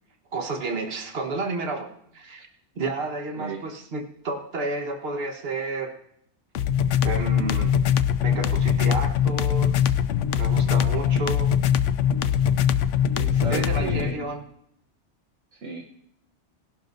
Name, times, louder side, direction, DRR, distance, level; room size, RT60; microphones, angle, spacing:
voice 1, 0.3-2.5 2.7-5.9 7.0-7.8 8.2-9.9 10.4-11.5 13.5-14.4, right 3 dB, 55° right, 3 dB, 1.5 m, -31 dB
sound 1, 6.5-14.1, left 9 dB, 80° left, 0.9 m, -22 dB
voice 2, 13.1-14.3 15.5-15.8, right 4 dB, 75° right, 1 dB, 1.3 m, -33 dB
18.5 x 11.5 x 2.6 m, 0.71 s
omnidirectional pair, 1.2 m